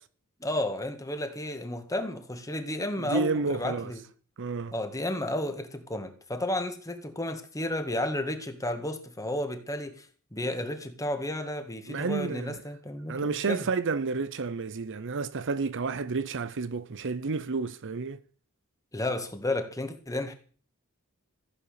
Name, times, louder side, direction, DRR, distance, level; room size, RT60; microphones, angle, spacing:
voice 1, 0.4-4.0 4.7-10.1 10.3-13.7 18.9-20.3, left 1 dB, 15° left, 1.9 m, -32 dB
voice 2, 3.0-3.9 4.4-4.7 11.9-12.6 13.1-18.2, right 4 dB, 55° right, 0.7 m, -30 dB
15.5 x 8.4 x 6.8 m
head